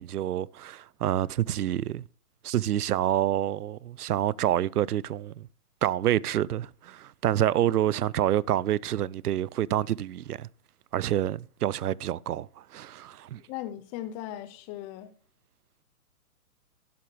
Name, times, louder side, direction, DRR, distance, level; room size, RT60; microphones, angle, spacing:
voice 1, 0.0-2.0 2.4-5.5 5.8-10.5 10.9-12.5 12.7-13.4, right 12 dB, 90° right, 0.5 m, -27 dB
voice 2, 13.5-15.1, left 12 dB, 20° left, 0.6 m, -38 dB
12.0 x 11.0 x 3.2 m
hypercardioid pair, 135°, 44 cm